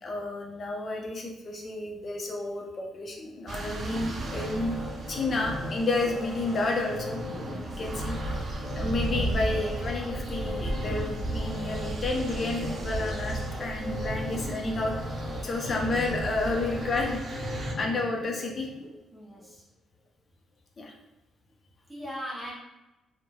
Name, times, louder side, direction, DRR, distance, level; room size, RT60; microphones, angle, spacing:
voice 1, 0.0-4.8 5.1-7.2 7.8-8.5 8.8-14.9 15.4-18.7 20.8-20.9, left 2 dB, 45° left, 1 dB, 0.5 m, -31 dB
sound 1, 3.5-17.7, right 2 dB, 50° right, 0.4 m, -35 dB
sound 2, 3.9-18.9 19.3-19.4, left 1 dB, 10° left, 1.5 m, -38 dB
voice 2, 7.5-7.8 15.3-15.6 19.1-19.6 21.9-22.5, equal, 10° right, -5 dB, 0.7 m, -40 dB
3.0 x 2.1 x 2.2 m, 0.98 s
cardioid pair, 90°, 0 cm